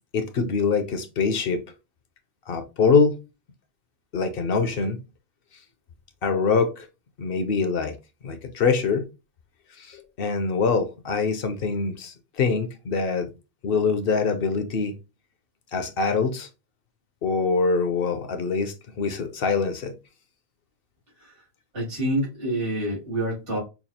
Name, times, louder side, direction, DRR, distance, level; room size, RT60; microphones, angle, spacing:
voice 1, 0.1-1.6 2.5-3.2 4.1-5.0 6.2-6.9 7.2-7.9 8.2-9.0 9.9-13.3 13.6-14.9 15.7-16.5 17.2-19.9, left 5 dB, 60° left, 0.7 m, -24 dB
voice 2, 21.7-23.6, right 1 dB, 75° right, 2.5 m, -27 dB
5.6 x 2.3 x 2.7 m
omnidirectional pair, 1.2 m